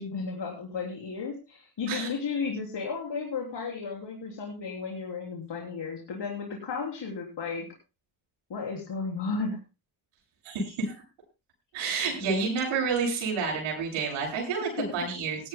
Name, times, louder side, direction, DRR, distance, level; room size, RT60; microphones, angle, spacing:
voice 1, 0.0-7.7 8.5-9.6 14.8-14.9, left 4 dB, 60° left, 0 dB, 3.7 m, -34 dB
voice 2, 10.4-11.0 11.7-15.5, right 4 dB, 90° right, -1 dB, 7.7 m, -29 dB
19.0 x 13.5 x 2.2 m, 0.29 s
supercardioid pair, 50°, 47 cm